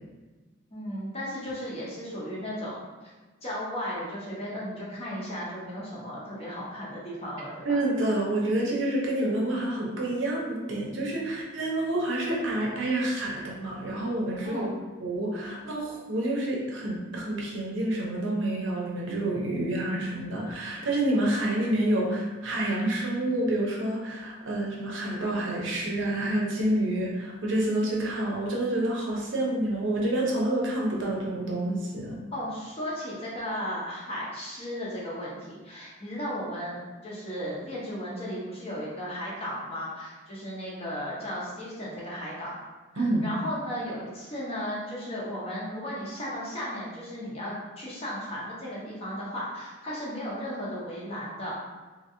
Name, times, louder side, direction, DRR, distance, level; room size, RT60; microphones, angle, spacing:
voice 1, 0.7-2.9 3.4-7.6 14.4-14.7 32.3-42.5 42.9-51.6, equal, 30° left, -6 dB, 0.8 m, -35 dB
voice 2, 7.6-14.7 15.0-32.1 43.0-43.3, right 1 dB, 70° right, -3 dB, 0.7 m, -28 dB
2.9 x 2.6 x 2.7 m, 1.3 s
head